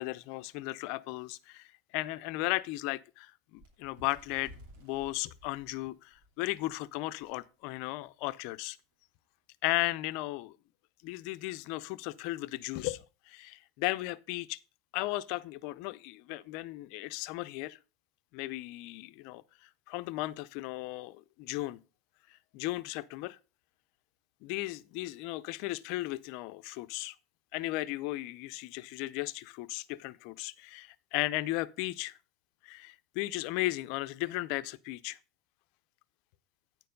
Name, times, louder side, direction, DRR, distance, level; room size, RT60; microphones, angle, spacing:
voice 1, 0.0-4.5 4.8-8.8 9.6-10.5 11.0-14.6 14.9-17.8 18.3-21.8 22.5-23.4 24.4-27.2 27.5-32.1 32.6-35.2, left 19 dB, 50° left, 0.4 m, -36 dB
Bird, 3.6-6.7 7.2-7.4 7.7-7.9 8.7-8.8, right 1 dB, 60° right, 2.6 m, -55 dB
9.3 x 4.6 x 5.2 m
supercardioid pair, 165°, 0 cm